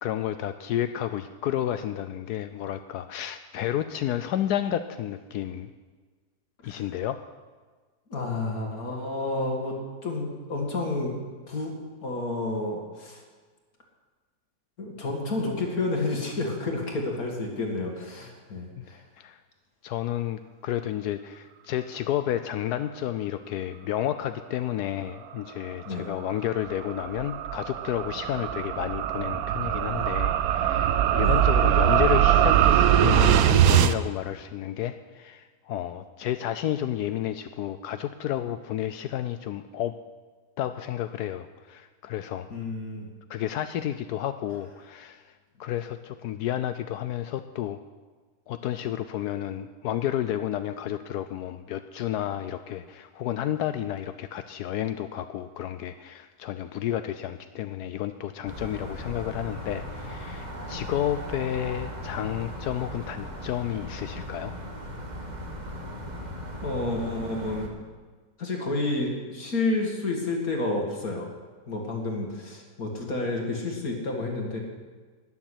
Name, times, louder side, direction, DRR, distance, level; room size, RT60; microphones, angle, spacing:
voice 1, 0.0-5.7 6.6-7.2 18.8-19.4 19.8-39.9 40.6-42.5 43.3-45.2 45.6-47.8 48.5-64.5, left 11 dB, 75° left, 10 dB, 1.1 m, -31 dB
voice 2, 8.1-11.2 11.5-11.8 12.0-13.2 14.8-19.0 25.8-26.1 31.2-31.4 42.5-43.1 66.6-67.7 68.4-71.3 71.7-74.6, left 2 dB, 60° left, 0 dB, 2.5 m, -30 dB
sound 1, 26.1-33.9, right 10 dB, 70° right, 1.1 m, -22 dB
sound 2, 58.5-67.7, equal, 25° right, 1.6 m, -38 dB
13.0 x 7.1 x 9.9 m, 1.4 s
omnidirectional pair, 1.7 m